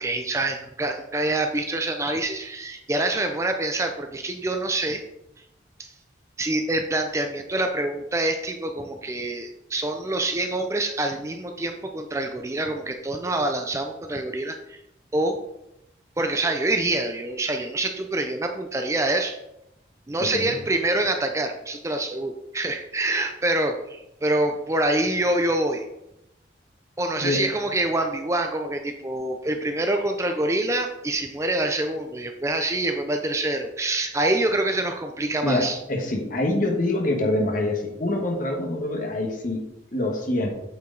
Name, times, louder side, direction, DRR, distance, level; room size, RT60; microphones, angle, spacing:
voice 1, 0.0-5.0 5.8-5.9 6.4-14.8 15.1-15.4 16.2-19.4 20.1-25.8 27.0-35.8, right 2 dB, 15° right, 5 dB, 0.4 m, -26 dB
voice 2, 20.2-20.5 27.2-27.4 35.4-39.6 39.9-40.5, left 1 dB, 45° left, 2 dB, 1.4 m, -25 dB
8.3 x 4.8 x 3.9 m, 0.87 s
head